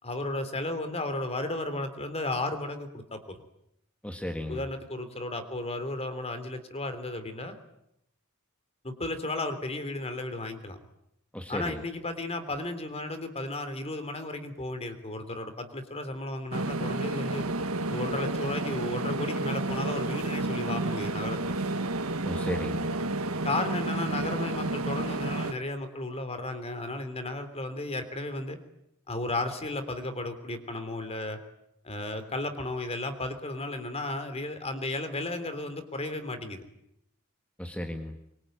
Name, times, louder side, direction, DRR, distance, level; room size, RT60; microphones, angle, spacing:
voice 1, 0.0-3.4 4.5-7.6 8.8-10.8 11.5-17.5 17.9-21.6 23.4-28.6 29.1-31.4 31.8-36.6, left 2 dB, 30° left, 9 dB, 3.3 m, -34 dB
voice 2, 4.0-4.6 11.3-11.8 22.2-22.9 37.6-38.1, left 1 dB, 5° left, 4 dB, 1.9 m, -34 dB
sound 1, 16.5-25.5, right 2 dB, 75° right, 1.7 m, -31 dB
24.5 x 24.0 x 9.3 m, 0.79 s
head